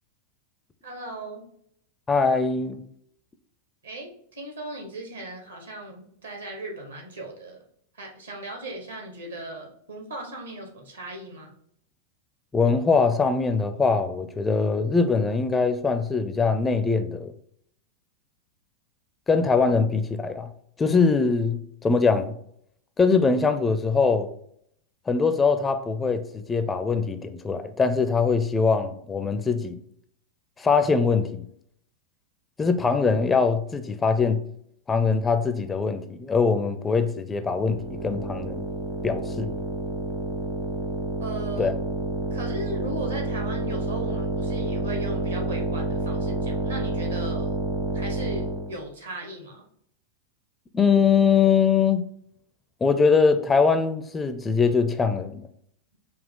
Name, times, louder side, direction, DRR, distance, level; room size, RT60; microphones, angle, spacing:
voice 1, 0.8-1.4 3.8-7.6 7.9-11.5 41.2-41.7 42.3-47.6 47.9-49.6, right 1 dB, 75° right, 1.3 m, -37 dB
voice 2, 2.1-2.8 12.5-17.3 19.3-20.5 20.8-22.3 23.0-24.3 25.1-29.8 30.6-31.5 32.6-34.4 34.9-38.6 39.0-39.5 41.6-41.7 50.7-52.1 52.8-55.5, left 5 dB, 15° left, 0.4 m, -22 dB
sound 1, 37.6-48.8, right 3 dB, 45° right, 0.8 m, -29 dB
5.1 x 2.4 x 3.6 m
figure-of-eight pair, 90°, 0 cm